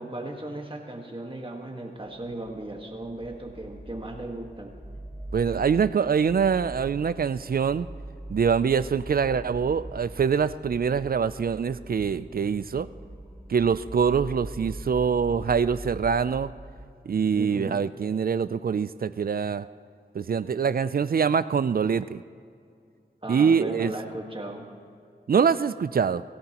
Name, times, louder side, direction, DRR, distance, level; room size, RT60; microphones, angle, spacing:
voice 1, 0.0-4.7 17.3-17.9 23.2-24.6, right 1 dB, 30° right, 1 dB, 1.5 m, -36 dB
sound 1, 2.1-16.9, right 1 dB, 10° left, 1.4 m, -42 dB
voice 2, 5.3-7.9 8.3-12.9 13.5-16.5 17.1-19.7 20.1-22.2 23.3-23.9 25.3-26.2, right 6 dB, 55° right, 15 dB, 0.4 m, -24 dB
23.0 x 13.0 x 3.0 m, 2.3 s
wide cardioid pair, 60°, 18 cm